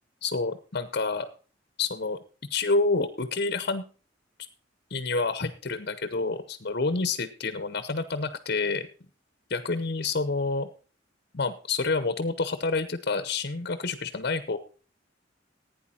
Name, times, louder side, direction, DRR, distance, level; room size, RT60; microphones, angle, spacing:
voice 1, 0.2-1.3 1.8-2.2 2.5-3.9 4.9-8.9 9.5-10.7 11.3-14.6, left 3 dB, 55° left, 11 dB, 0.9 m, -28 dB
15.5 x 9.4 x 4.3 m, 0.38 s
head